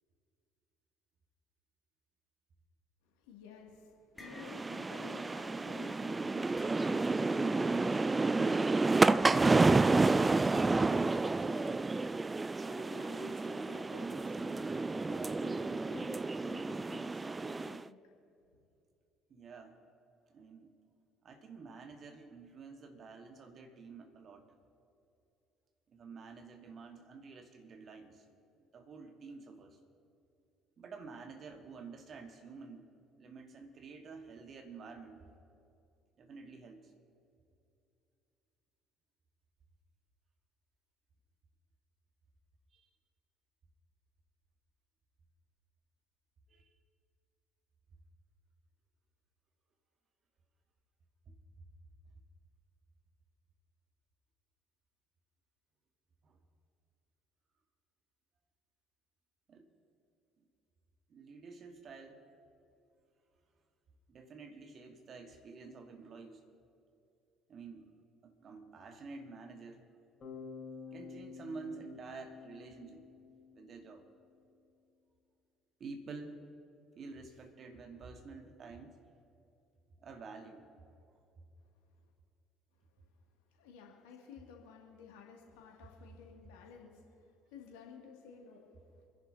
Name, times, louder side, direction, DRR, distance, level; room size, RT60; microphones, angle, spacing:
voice 1, 3.0-12.0 12.6-18.0 83.0-83.1 83.5-89.1, left 6 dB, 70° left, -1 dB, 2.5 m, -54 dB
sound 1, 3.3-3.6 3.9-5.0 5.3-5.5 6.6-7.3, left 3 dB, 25° left, 1.8 m, -55 dB
sound 2, 4.3-17.8, right 3 dB, 20° right, 0.3 m, -30 dB
voice 2, 19.3-19.8 20.3-20.8 21.2-24.5 25.9-28.2 28.6-29.8 30.8-32.9 33.2-35.3 36.2-36.9 42.7-42.9 46.5-46.7 51.3-51.4 56.2-56.4 59.5-59.7 60.4-60.5 61.1-62.2 64.1-66.4 67.5-67.9 68.2-69.9 70.8-73.1 73.5-74.1 75.8-76.4 76.9-79.0 80.0-80.7, right 4 dB, 45° right, 5 dB, 1.7 m, -49 dB
Bass guitar, 70.2-74.2, left 5 dB, 40° left, 3.9 m, -50 dB
28.0 x 10.5 x 2.9 m, 2.6 s
figure-of-eight pair, 55°, 0 cm